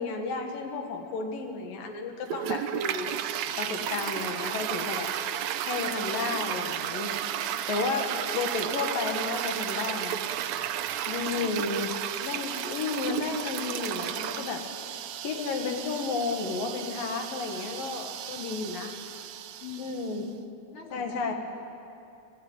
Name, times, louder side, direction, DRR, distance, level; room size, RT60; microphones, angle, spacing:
voice 1, 0.0-3.1 3.6-5.1 5.6-7.2 7.7-10.2 11.1-11.9 12.2-14.7 15.2-18.9 19.8-20.3 20.9-21.3, left 4 dB, 85° left, 3 dB, 3.6 m, -32 dB
Toilet flush, 2.2-20.2, right 10 dB, 75° right, 1.8 m, -33 dB
voice 2, 11.6-12.0 19.6-20.4 20.7-21.3, left 5 dB, 65° left, -1 dB, 4.6 m, -44 dB
27.0 x 15.0 x 9.1 m, 2.7 s
omnidirectional pair, 3.8 m